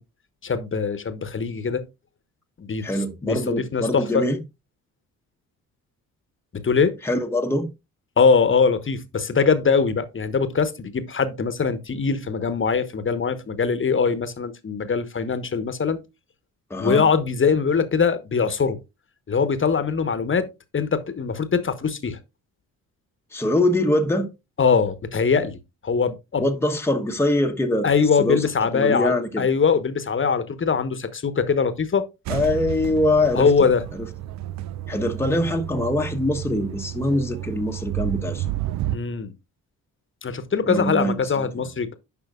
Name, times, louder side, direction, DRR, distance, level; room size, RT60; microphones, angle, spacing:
voice 1, 0.4-1.8 2.6-2.8 3.2-4.2 6.5-6.9 8.2-16.0 16.8-18.8 19.3-20.5 20.7-22.2 24.6-25.6 25.8-26.5 27.8-32.0 33.3-33.8 38.9-39.3 40.2-41.9, left 5 dB, 30° left, 1.1 m, -22 dB
voice 2, 2.8-4.4 7.0-7.7 16.7-17.0 23.3-24.3 26.4-27.9 28.2-28.5 28.7-29.5 32.3-33.5 34.9-38.5 40.7-41.5, left 1 dB, 5° left, 1.0 m, -23 dB
sound 1, 32.3-39.0, right 14 dB, 45° right, 0.4 m, -31 dB
10.5 x 5.5 x 2.4 m
hypercardioid pair, 45°, 43 cm